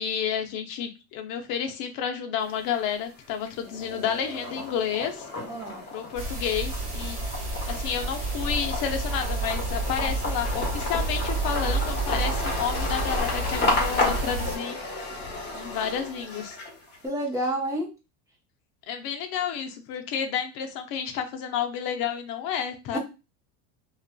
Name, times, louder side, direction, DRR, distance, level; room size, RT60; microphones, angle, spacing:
voice 1, 0.0-5.3 5.9-7.2 7.7-15.0 15.5-16.6 18.9-23.0, left 8 dB, 50° left, 5 dB, 0.6 m, -30 dB
sound 1, 2.4-3.1 3.5-17.0, left 2 dB, 25° left, 1.1 m, -32 dB
voice 2, 5.5-5.8 17.0-17.9 22.9-23.0, right 1 dB, 10° right, -2 dB, 0.8 m, -29 dB
sound 2, 6.2-14.6, right 2 dB, 30° right, 1.3 m, -30 dB
2.4 x 2.4 x 2.2 m, 0.28 s
supercardioid pair, 115°, 44 cm